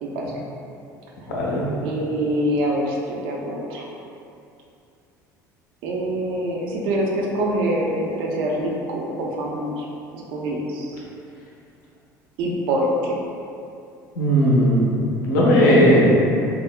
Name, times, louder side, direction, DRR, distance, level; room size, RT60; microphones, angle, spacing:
voice 1, 0.0-0.3 1.8-3.9 5.8-9.9 10.3-11.0 12.4-13.2, right 1 dB, 55° right, -2 dB, 0.5 m, -25 dB
voice 2, 1.3-1.7 14.2-14.9 15.2-16.1, equal, 70° left, -5 dB, 0.5 m, -16 dB
3.5 x 2.0 x 2.2 m, 2.5 s
figure-of-eight pair, 65°, 10 cm